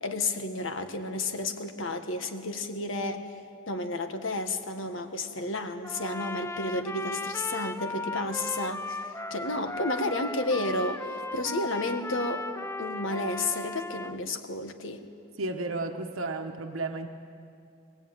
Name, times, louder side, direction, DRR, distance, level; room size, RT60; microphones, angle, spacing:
voice 1, 0.0-3.3 3.7-12.5 12.8-15.1, left 2 dB, 65° left, 7 dB, 1.6 m, -32 dB
Trumpet, 5.8-14.2, left 2 dB, 15° left, 0.5 m, -36 dB
voice 2, 15.4-17.1, right 2 dB, 85° right, 4 dB, 1.2 m, -33 dB
21.5 x 20.5 x 9.0 m, 2.4 s
head